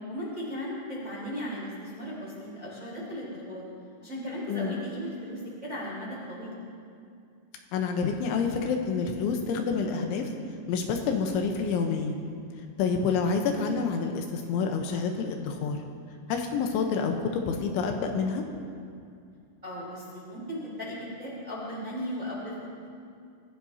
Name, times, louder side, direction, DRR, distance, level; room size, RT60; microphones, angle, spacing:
voice 1, 0.1-3.6 4.0-6.5 12.8-13.1 19.6-22.6, equal, 20° right, -7 dB, 3.4 m, -37 dB
voice 2, 4.5-4.8 7.7-10.3 10.7-12.2 12.8-15.8 16.3-18.4, left 5 dB, 80° left, 4 dB, 3.2 m, -28 dB
25.5 x 15.5 x 2.8 m, 2.4 s
omnidirectional pair, 5.7 m